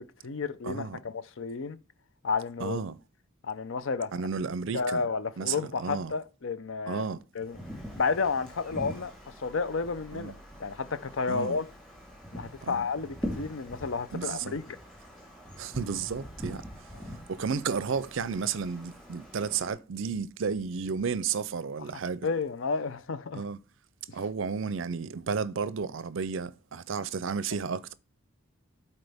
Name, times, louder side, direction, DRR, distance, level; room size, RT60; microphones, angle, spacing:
voice 1, 0.0-1.8 2.2-2.8 3.4-4.1 4.7-7.1 7.3-7.6 8.0-10.3 10.6-11.7 12.3-14.8 17.0-17.2 22.2-23.4, left 4 dB, 65° left, 0.6 m, -31 dB
voice 2, 0.6-1.0 2.6-3.0 4.1-5.0 5.4-6.1 6.9-7.2 10.1-10.4 11.3-11.6 12.6-12.9 14.1-14.6 15.6-16.6 17.3-22.3 23.3-23.6 24.1-27.9, right 5 dB, 60° right, 0.5 m, -32 dB
Wind, 7.4-19.7, equal, ahead, 3.3 m, -43 dB
12.0 x 4.3 x 3.5 m
head